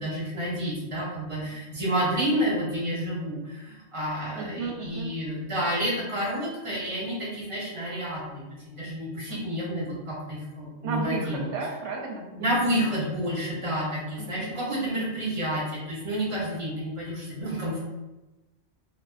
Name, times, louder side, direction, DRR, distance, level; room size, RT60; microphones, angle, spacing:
voice 1, 0.0-11.4 12.4-17.8, equal, 30° right, -6 dB, 0.7 m, -30 dB
voice 2, 4.3-5.2 9.3-9.6 10.8-12.7 14.2-14.6, right 3 dB, 70° right, 0 dB, 0.8 m, -34 dB
2.5 x 2.5 x 2.3 m, 1.1 s
omnidirectional pair, 1.3 m